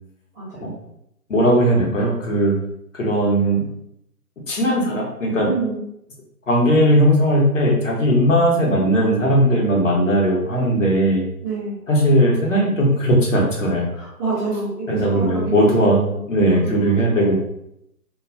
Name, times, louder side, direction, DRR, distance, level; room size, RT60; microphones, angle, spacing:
voice 1, 0.3-0.7 1.7-1.9 5.4-5.8 8.2-8.3 11.4-11.8 13.9-17.3, right 3 dB, 5° right, -15 dB, 0.6 m, -29 dB
voice 2, 1.3-2.6 2.9-3.6 4.5-5.5 6.5-11.2 11.9-13.8 14.9-16.0 16.3-17.4, equal, 55° left, -2 dB, 1.0 m, -18 dB
2.3 x 2.1 x 3.5 m, 0.78 s
figure-of-eight pair, 135°, 46 cm